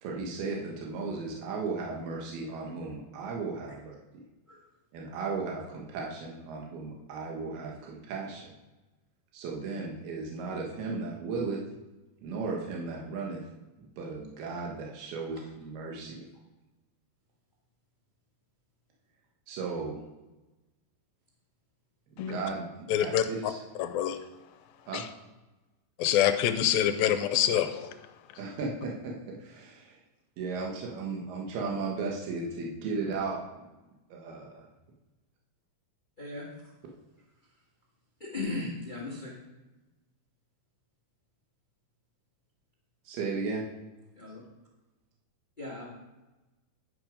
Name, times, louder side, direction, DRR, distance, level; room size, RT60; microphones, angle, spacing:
voice 1, 0.0-4.2 4.9-8.6 9.3-11.6 12.2-13.4 13.8-16.2 19.5-20.0 22.2-23.6 24.9-25.0 28.4-30.0 30.4-33.6 34.1-34.7 43.0-43.7, right 4 dB, 85° right, -2 dB, 3.3 m, -35 dB
voice 2, 22.9-23.2 23.8-24.2 24.9-25.0 26.0-27.9, left 10 dB, 80° left, 9 dB, 2.3 m, -26 dB
voice 3, 36.2-36.5 38.2-39.3 44.1-44.4 45.6-45.8, left 2 dB, 50° left, -4 dB, 0.5 m, -36 dB
11.0 x 6.2 x 5.1 m, 1.1 s
omnidirectional pair, 4.3 m